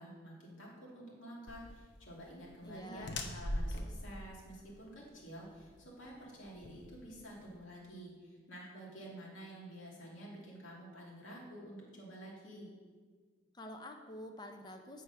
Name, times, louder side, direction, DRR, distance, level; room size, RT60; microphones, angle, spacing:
voice 1, 0.0-12.7, right 1 dB, 85° left, -4 dB, 2.4 m, -50 dB
sound 1, 1.5-7.6, left 1 dB, 60° left, 0.7 m, -43 dB
voice 2, 2.3-3.2 13.5-15.0, left 1 dB, 20° left, 5 dB, 0.6 m, -48 dB
8.5 x 4.6 x 5.6 m, 1.5 s
head